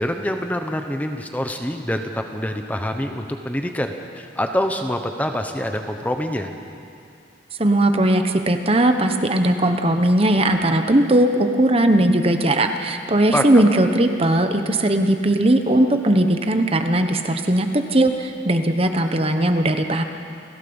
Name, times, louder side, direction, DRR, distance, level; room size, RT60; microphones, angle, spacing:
voice 1, 0.0-6.5 13.3-13.5, left 1 dB, 10° left, 5 dB, 1.0 m, -25 dB
voice 2, 7.6-20.0, right 1 dB, 30° right, 6 dB, 1.1 m, -18 dB
29.5 x 16.0 x 7.1 m, 2.5 s
head